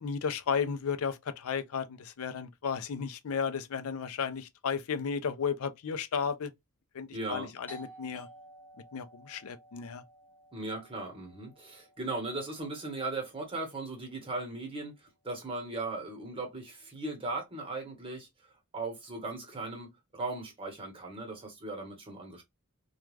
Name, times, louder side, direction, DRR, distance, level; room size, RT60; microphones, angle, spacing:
voice 1, 0.0-6.5 6.9-8.3 8.9-10.0, left 6 dB, 70° left, 0.4 m, -34 dB
voice 2, 7.1-7.5 10.5-18.3 18.7-22.4, right 2 dB, 25° right, 1.1 m, -38 dB
Doorbell, 7.7-13.1, right 1 dB, 10° left, 0.8 m, -54 dB
2.3 x 2.3 x 3.1 m
head